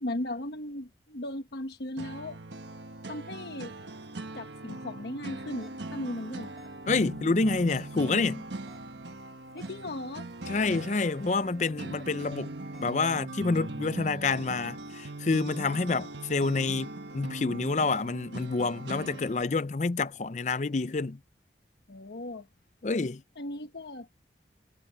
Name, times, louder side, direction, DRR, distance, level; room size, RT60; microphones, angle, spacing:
voice 1, 0.0-2.4 3.1-3.7 4.3-6.5 9.5-10.3 21.9-22.5 23.4-24.1, left 1 dB, 70° left, 1.2 m, -37 dB
sound 1, 2.0-19.4, right 2 dB, 90° right, 1.4 m, -40 dB
sound 2, 5.6-13.8, equal, ahead, 2.7 m, -62 dB
voice 2, 6.9-8.4 10.5-12.5 12.8-21.2 22.8-23.2, left 3 dB, 40° left, 0.5 m, -28 dB
head